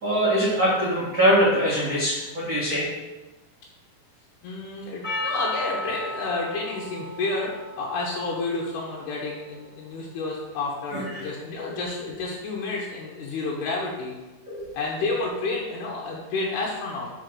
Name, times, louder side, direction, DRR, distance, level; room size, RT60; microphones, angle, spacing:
voice 1, 0.0-2.9 10.9-11.3 11.6-11.7 14.5-14.7, equal, 75° right, -8 dB, 0.8 m, -23 dB
voice 2, 4.4-14.2 14.7-17.1, left 3 dB, 80° left, -3 dB, 2.9 m, -30 dB
Percussion, 5.0-9.6, left 1 dB, 20° left, 2.1 m, -35 dB
5.5 x 5.1 x 5.9 m, 1.1 s
omnidirectional pair, 4.7 m